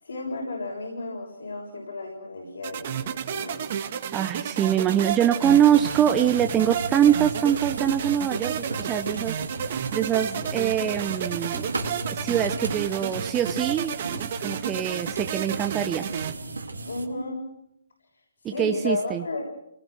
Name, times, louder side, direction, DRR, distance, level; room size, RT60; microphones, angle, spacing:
voice 1, 0.0-3.8 16.9-17.4 18.4-19.4, left 2 dB, 75° left, -1 dB, 6.8 m, -33 dB
sound 1, 2.6-16.3, right 9 dB, 45° right, 2.1 m, -32 dB
voice 2, 4.1-9.4 9.7-11.7 12.1-16.1 18.4-19.2, right 10 dB, 15° right, 6 dB, 0.9 m, -24 dB
sound 2, 5.4-17.1, right 3 dB, 85° right, 3.2 m, -35 dB
28.5 x 19.5 x 6.4 m, 0.79 s
figure-of-eight pair, 140°, 0 cm